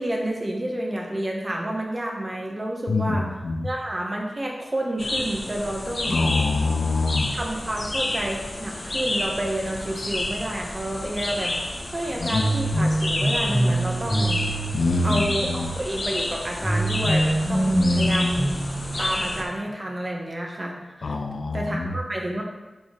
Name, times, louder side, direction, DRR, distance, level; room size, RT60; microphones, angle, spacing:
voice 1, 0.0-3.3 3.6-6.3 7.3-11.5 11.9-14.4 15.0-18.5 19.0-21.2 21.5-22.4, right 1 dB, 40° right, 0 dB, 1.7 m, -29 dB
voice 2, 2.9-3.6 6.1-7.3 12.2-12.4 14.7-15.7 17.8-18.3 21.0-22.0, left 3 dB, 80° left, 6 dB, 0.7 m, -25 dB
sound 1, 5.0-19.4, left 1 dB, 55° left, 1.4 m, -30 dB
sound 2, 12.3-15.5 16.6-19.6, right 1 dB, ahead, 1.7 m, -24 dB
11.0 x 5.4 x 3.6 m, 1.1 s
cardioid pair, 50°, 0 cm